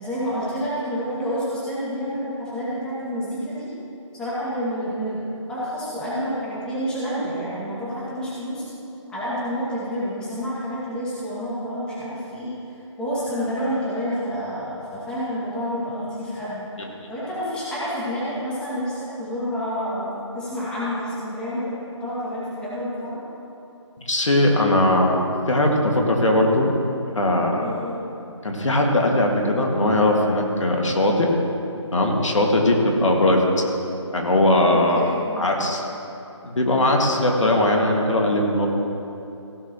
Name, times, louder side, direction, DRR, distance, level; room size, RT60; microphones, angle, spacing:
voice 1, 0.0-3.7 4.1-5.2 5.5-8.6 9.1-12.5 13.0-16.6 17.1-23.2 27.6-27.9 34.9-35.2, equal, 5° left, -10 dB, 2.2 m, -28 dB
voice 2, 24.1-26.7 27.2-27.7 28.4-31.3 31.9-33.4 34.1-35.0 35.4-35.8 36.4-38.7, left 1 dB, 75° left, 0 dB, 2.0 m, -19 dB
16.0 x 11.5 x 3.0 m, 2.8 s
figure-of-eight pair, 160°, 16 cm